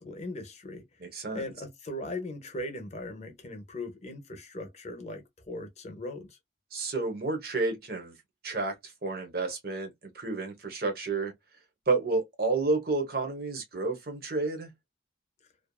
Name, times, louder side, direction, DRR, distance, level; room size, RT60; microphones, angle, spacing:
voice 1, 0.0-0.8 1.3-6.4, left 1 dB, 35° left, 0.7 m, -39 dB
voice 2, 1.0-1.4 6.7-8.1 8.4-11.3 11.9-14.7, right 3 dB, 55° right, 0.9 m, -30 dB
2.5 x 2.4 x 2.2 m
head